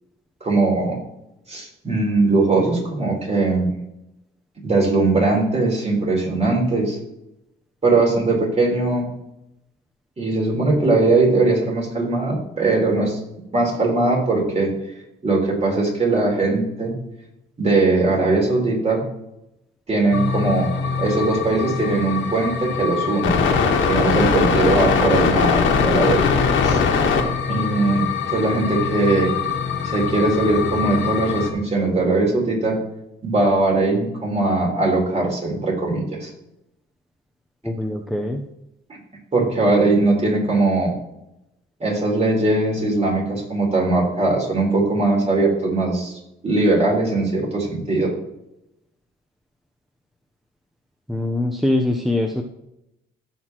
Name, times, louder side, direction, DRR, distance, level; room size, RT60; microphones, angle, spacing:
voice 1, 0.4-1.0 1.5-3.7 4.6-7.0 7.8-9.1 10.2-13.2 13.5-14.7 15.2-17.0 17.6-19.0 19.9-20.7 21.0-23.4 23.9-26.8 27.5-29.3 29.8-32.8 33.2-36.3 38.9-39.0 39.3-41.0 41.8-46.2 46.4-48.1, right 2 dB, 35° right, -1 dB, 3.8 m, -20 dB
sound 1, 20.1-31.5, left 5 dB, 80° left, 1.6 m, -22 dB
voice 2, 37.6-38.5 51.1-52.4, left 1 dB, ahead, 3 dB, 0.8 m, -23 dB
15.5 x 5.9 x 3.0 m, 0.87 s
cardioid pair, 90°, 20 cm